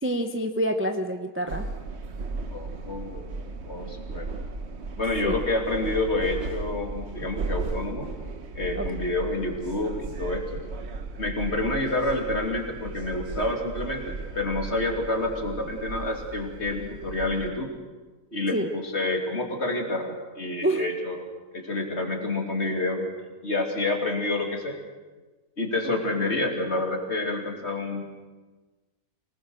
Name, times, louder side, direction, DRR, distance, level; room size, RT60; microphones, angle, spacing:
voice 1, 0.0-1.7 5.2-5.4 8.7-8.9 18.5-18.7 20.6-20.9, right 1 dB, 10° right, 5 dB, 0.9 m, -27 dB
sound 1, 1.5-17.5, right 3 dB, 50° right, 1.4 m, -36 dB
voice 2, 2.5-3.3 3.7-4.3 5.0-8.1 8.5-10.6 11.2-17.7 18.3-21.2 21.5-23.1 23.4-24.8 25.6-28.2, left 2 dB, 45° left, 2 dB, 3.2 m, -28 dB
25.5 x 19.0 x 6.4 m, 1.3 s
omnidirectional pair, 1.6 m